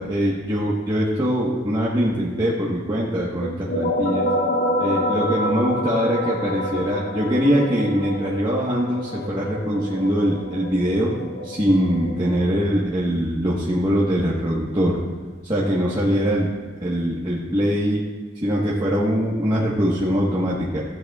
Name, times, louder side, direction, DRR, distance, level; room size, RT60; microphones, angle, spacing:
voice 1, 0.0-4.3 4.8-11.1 11.4-15.0 15.4-16.5 16.8-18.0 18.4-20.8, equal, 25° right, -6 dB, 1.3 m, -22 dB
sound 1, 3.4-12.8, left 1 dB, 60° left, 1.1 m, -27 dB
15.0 x 11.0 x 2.4 m, 1.5 s
head